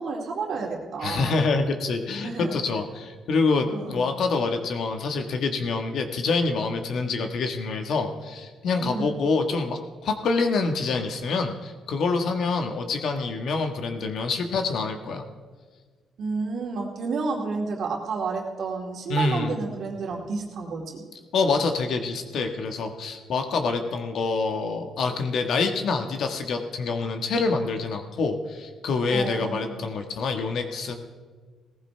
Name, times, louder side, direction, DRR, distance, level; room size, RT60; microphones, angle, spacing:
voice 1, 0.0-1.3 2.2-2.6 3.7-4.1 8.8-9.2 16.2-21.0 29.1-29.9, right 4 dB, 65° right, 1 dB, 2.3 m, -31 dB
voice 2, 1.0-15.2 19.1-19.5 21.3-31.0, left 4 dB, 70° left, 5 dB, 1.4 m, -26 dB
18.0 x 15.0 x 3.4 m, 1.5 s
cardioid pair, 90°, 0 cm